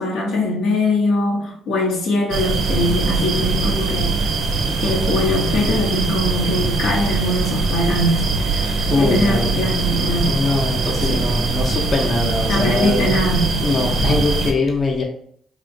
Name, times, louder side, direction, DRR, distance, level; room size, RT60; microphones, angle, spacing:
voice 1, 0.0-4.2 4.8-10.4 11.0-11.3 12.5-13.6, left 1 dB, 90° left, -1 dB, 0.7 m, -22 dB
sound 1, 2.3-14.5, right 3 dB, 80° right, 0.4 m, -21 dB
voice 2, 8.8-9.7 10.3-13.1 13.6-15.0, left 2 dB, 45° left, 0 dB, 0.6 m, -22 dB
2.8 x 2.4 x 2.6 m, 0.63 s
cardioid pair, 90°, 0 cm